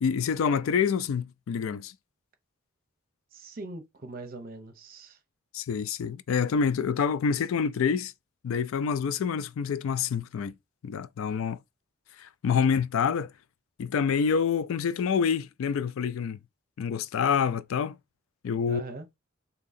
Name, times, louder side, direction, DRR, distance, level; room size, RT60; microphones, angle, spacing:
voice 1, 0.0-1.9 5.5-8.1 8.4-10.5 10.8-11.6 12.2-13.3 13.8-16.4 16.8-18.0 18.4-18.8, left 6 dB, 75° left, 0.3 m, -27 dB
voice 2, 3.3-5.2 18.7-19.1, right 3 dB, 45° right, 0.7 m, -41 dB
3.7 x 2.9 x 4.1 m
head